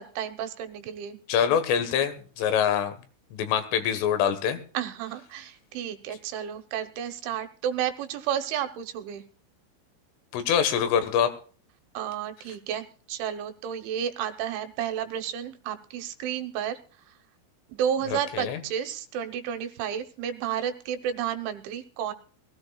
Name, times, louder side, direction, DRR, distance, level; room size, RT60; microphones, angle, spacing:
voice 1, 0.0-1.2 4.7-9.2 11.9-16.8 17.7-22.1, right 9 dB, 75° right, 8 dB, 3.2 m, -31 dB
voice 2, 1.3-3.0 3.3-4.6 10.3-11.3 18.1-18.6, left 8 dB, 80° left, 9 dB, 3.9 m, -25 dB
21.0 x 16.0 x 2.3 m, 0.41 s
omnidirectional pair, 5.7 m